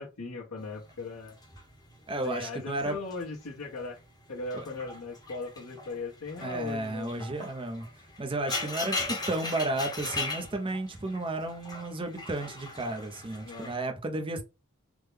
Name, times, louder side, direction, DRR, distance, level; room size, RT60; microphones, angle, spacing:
voice 1, 0.0-1.4 2.2-4.0 4.3-7.1 13.4-13.7, left 3 dB, 85° left, 1.0 m, -38 dB
sound 1, 0.9-3.3 3.6-4.0 4.4-13.7, left 3 dB, 20° left, 0.8 m, -39 dB
voice 2, 2.1-3.0 4.5-4.7 6.4-7.9 8.2-14.4, right 2 dB, 25° right, 0.6 m, -33 dB
3.6 x 2.1 x 3.2 m
head